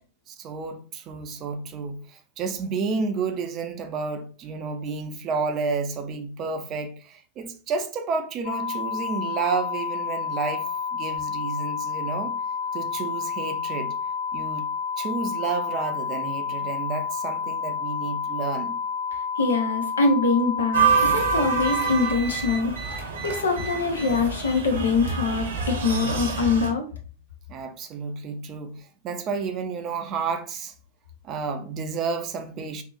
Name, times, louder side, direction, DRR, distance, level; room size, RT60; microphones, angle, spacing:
voice 1, 0.3-12.4 12.7-13.9 14.3-14.7 15.0-18.8 27.5-30.7 31.2-32.8, right 4 dB, 35° right, 0.5 m, -31 dB
sound 1, 8.4-21.9, left 6 dB, 45° left, 0.9 m, -30 dB
voice 2, 19.4-26.8, left 4 dB, 70° left, 0.8 m, -24 dB
sound 2, 20.7-26.7, right 6 dB, 60° right, 0.8 m, -26 dB
3.8 x 2.7 x 2.4 m
figure-of-eight pair, 90°, 0 cm